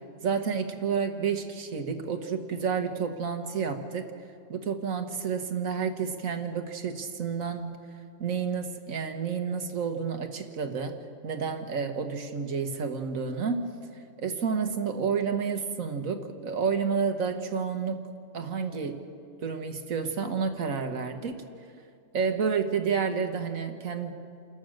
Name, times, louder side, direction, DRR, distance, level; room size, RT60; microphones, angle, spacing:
voice 1, 0.2-4.1 4.5-7.8 8.2-11.0 11.2-13.6 14.2-18.0 18.3-19.0 19.4-21.4 22.1-24.2, right 6 dB, 85° right, 6 dB, 1.8 m, -30 dB
29.0 x 13.5 x 6.5 m, 2.3 s
omnidirectional pair, 1.4 m